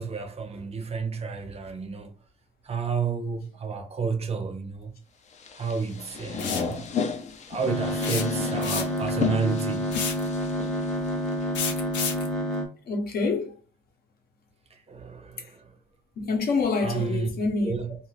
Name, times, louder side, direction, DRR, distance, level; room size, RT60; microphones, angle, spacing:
voice 1, 0.0-2.1 2.6-4.9 5.5-6.8 7.5-9.9 14.9-15.7 16.8-17.3 17.6-18.0, right 5 dB, 35° right, 0.6 m, -31 dB
sound 1, 5.3-11.4, left 6 dB, 40° left, 0.4 m, -33 dB
voice 2, 6.3-6.6 7.2-7.4 12.8-13.5 16.2-17.8, left 4 dB, 55° left, 0.8 m, -27 dB
sound 2, 6.4-6.7 8.0-9.1 9.9-10.3 11.5-12.3, left 6 dB, 90° left, 0.6 m, -30 dB
sound 3, 7.7-12.7, equal, 5° left, 0.8 m, -29 dB
2.4 x 2.4 x 3.2 m
cardioid pair, 130°, 18 cm